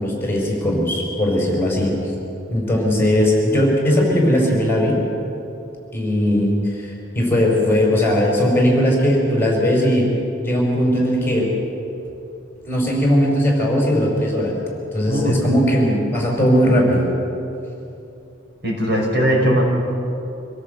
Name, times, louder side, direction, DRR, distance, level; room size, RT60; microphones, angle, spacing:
voice 1, 0.0-1.9 2.5-5.0 5.9-10.1 10.4-11.5 12.6-14.5 14.9-17.1, equal, 10° left, -1 dB, 5.1 m, -18 dB
voice 2, 18.6-19.6, equal, 60° right, -2 dB, 6.1 m, -19 dB
26.0 x 16.5 x 8.0 m, 2.8 s
head